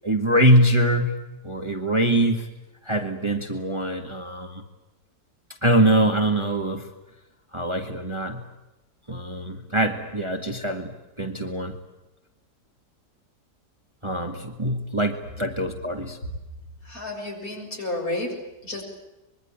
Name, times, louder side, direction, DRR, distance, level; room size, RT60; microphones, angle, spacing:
voice 1, 0.0-1.2 1.4-2.5 2.8-4.6 5.6-6.9 7.5-8.4 9.1-10.9 11.2-11.8 14.0-16.2, right 1 dB, 15° right, 5 dB, 2.0 m, -23 dB
voice 2, 16.8-18.8, left 2 dB, 55° left, 1 dB, 7.7 m, -31 dB
25.0 x 22.5 x 8.8 m, 1.0 s
omnidirectional pair, 1.8 m